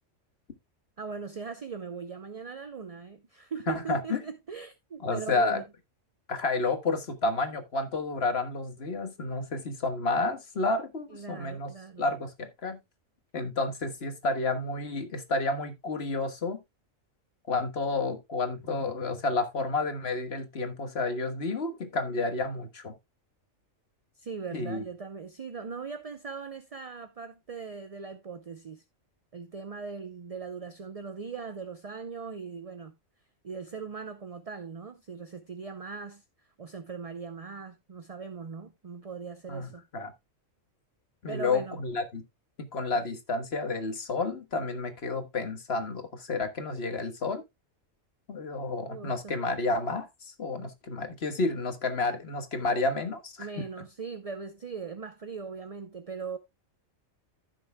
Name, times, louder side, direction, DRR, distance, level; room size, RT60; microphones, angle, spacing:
voice 1, 1.0-5.6 11.1-12.1 24.1-28.8 29.3-32.9 33.4-36.2 36.6-39.8 41.3-41.8 48.9-49.4 53.4-56.4, right 5 dB, 40° right, 0.6 m, -40 dB
voice 2, 3.7-4.2 5.0-5.6 6.3-11.7 12.0-12.8 13.3-16.6 17.5-22.9 24.5-24.8 39.5-40.1 41.2-42.2 42.6-47.4 48.3-53.7, left 3 dB, 50° left, 1.6 m, -30 dB
15.5 x 6.2 x 2.2 m
omnidirectional pair, 1.4 m